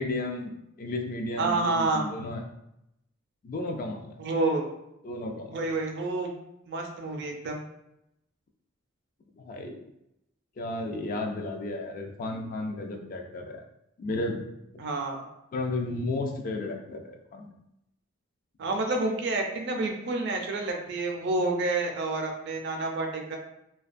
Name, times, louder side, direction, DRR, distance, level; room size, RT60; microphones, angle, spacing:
voice 1, 0.0-2.4 3.4-4.1 5.0-5.6 9.4-9.8 10.6-13.6 14.0-14.5 14.7-14.8 15.5-17.5, left 2 dB, 45° left, 3 dB, 0.3 m, -33 dB
voice 2, 1.4-2.1 4.2-4.6 5.5-6.3 6.7-7.7 14.8-15.3 18.6-23.4, right 2 dB, 60° right, 2 dB, 0.4 m, -29 dB
2.4 x 2.2 x 2.5 m, 0.84 s
head